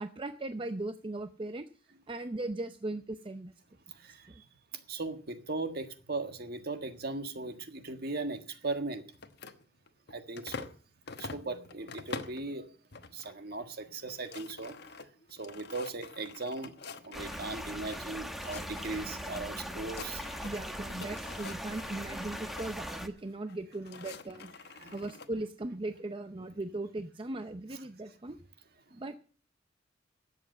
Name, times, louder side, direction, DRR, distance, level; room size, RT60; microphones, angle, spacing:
voice 1, 0.0-1.7 2.1-3.5 4.3-4.4 20.4-24.5 24.9-28.4 28.9-29.1, right 2 dB, 25° right, 9 dB, 0.6 m, -38 dB
voice 2, 3.9-4.5 4.9-9.1 10.1-10.7 11.2-12.7 13.1-15.0 15.3-16.8 17.0-20.2 24.8-25.0, right 3 dB, 55° right, 7 dB, 1.6 m, -38 dB
sound 1, 9.1-10.8 11.1-12.5 12.9-13.4 13.7-13.8 14.0-18.0 18.3-19.4 19.7-20.6 20.9-22.7 23.5-25.3, left 4 dB, 55° left, 1.2 m, -46 dB
sound 2, 17.1-23.1, equal, ahead, 1.2 m, -40 dB
12.5 x 8.3 x 7.7 m, 0.41 s
head